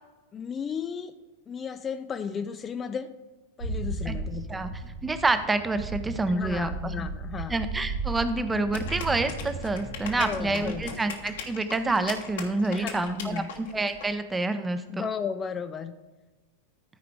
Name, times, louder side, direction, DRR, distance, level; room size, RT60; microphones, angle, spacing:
voice 1, 0.3-1.1 1.5-3.1 3.6-4.6 6.2-7.6 10.0-10.9 12.7-13.5 14.9-15.9, left 6 dB, 20° left, 9 dB, 0.4 m, -34 dB
sound 1, 3.6-10.9, right 3 dB, 60° right, 3.1 m, -35 dB
voice 2, 4.5-7.1 7.5-15.1, right 2 dB, 10° right, 10 dB, 0.7 m, -28 dB
sound 2, 8.7-14.0, left 7 dB, 60° left, 1.3 m, -39 dB
13.5 x 4.9 x 4.8 m, 1.3 s
figure-of-eight pair, 90°, 0 cm